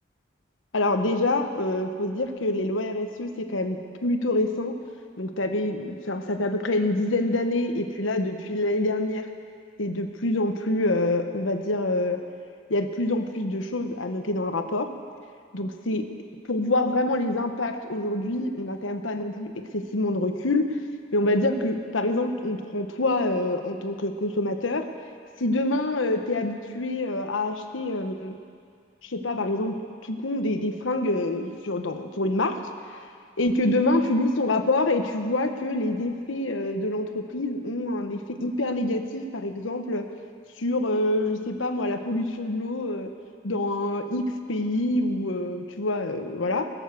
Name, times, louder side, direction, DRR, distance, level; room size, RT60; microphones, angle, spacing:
voice 1, 0.7-4.7 5.2-9.3 9.8-12.2 12.7-14.9 15.5-16.1 16.5-20.8 21.1-24.8 25.4-28.3 29.0-29.8 30.0-32.6 33.4-40.0 40.6-43.1 43.4-46.7, left 2 dB, 85° left, 6 dB, 1.1 m, -26 dB
21.5 x 7.2 x 7.0 m, 2.3 s
head